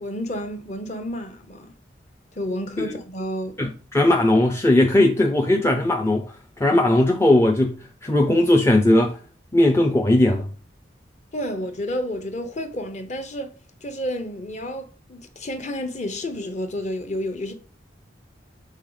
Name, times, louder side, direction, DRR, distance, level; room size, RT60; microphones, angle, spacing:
voice 1, 0.0-1.7 2.3-3.5 11.3-13.5 13.8-17.5, left 1 dB, 40° left, 0.8 m, -30 dB
voice 2, 3.6-6.3 6.6-7.7 8.0-9.2 9.5-10.5, left 1 dB, 15° left, 0.5 m, -18 dB
6.4 x 3.8 x 3.9 m
head